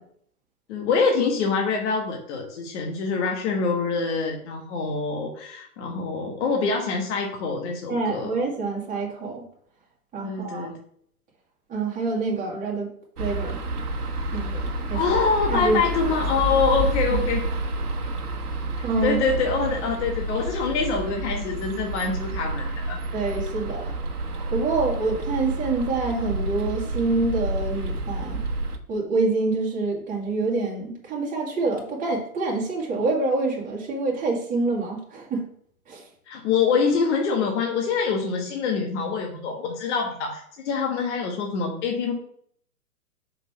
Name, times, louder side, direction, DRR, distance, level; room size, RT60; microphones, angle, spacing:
voice 1, 0.7-8.3 10.2-10.8 14.9-17.4 18.8-23.0 36.3-42.1, left 5 dB, 50° left, 1 dB, 1.4 m, -25 dB
voice 2, 7.9-9.4 10.1-10.7 11.7-12.9 13.2-13.6 14.3-15.0 15.5-15.8 17.1-17.2 18.8-19.2 23.1-24.0 24.5-28.4 28.9-35.4 35.9-36.0, right 3 dB, 15° right, -2 dB, 1.9 m, -26 dB
sound 1, 13.2-28.8, right 2 dB, 90° right, 1.2 m, -29 dB
5.4 x 3.9 x 5.9 m, 0.64 s
hypercardioid pair, 125°, 44 cm